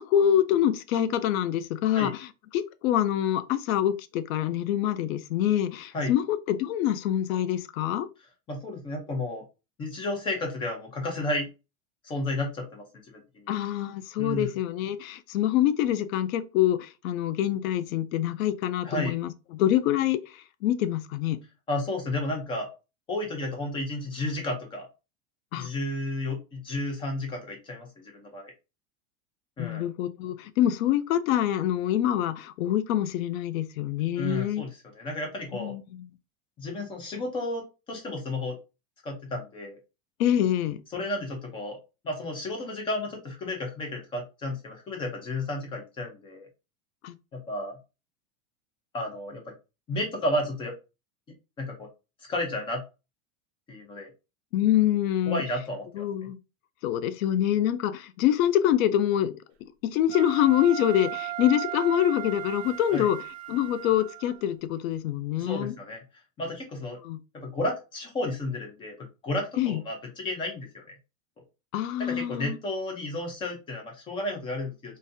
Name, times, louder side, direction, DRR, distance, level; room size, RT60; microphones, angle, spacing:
voice 1, 0.0-2.3 2.5-8.1 13.5-21.4 25.5-25.7 29.6-34.6 35.5-36.1 40.2-40.8 47.0-47.1 54.5-55.4 56.0-56.4 56.8-59.4 59.8-63.2 63.5-65.7 67.0-67.2 69.6-69.8 71.7-72.6, left 11 dB, 80° left, 0.6 m, -25 dB
voice 2, 8.5-9.4 9.8-11.5 12.0-13.5 14.2-14.5 18.8-19.2 21.7-22.7 23.1-24.9 25.5-28.5 29.6-29.9 34.2-35.8 36.6-38.6 39.0-39.8 40.9-41.8 42.0-46.5 47.3-47.8 48.9-49.5 49.9-50.8 51.6-51.9 52.3-52.8 53.7-54.1 55.3-56.3 62.9-63.1 65.4-66.0 66.4-67.0 67.3-70.9 72.0-75.0, left 1 dB, 15° left, 0.4 m, -32 dB
Wind instrument woodwind instrument, 60.1-64.4, right 16 dB, 50° right, 0.7 m, -37 dB
3.9 x 2.5 x 2.6 m
supercardioid pair, 170°, 41 cm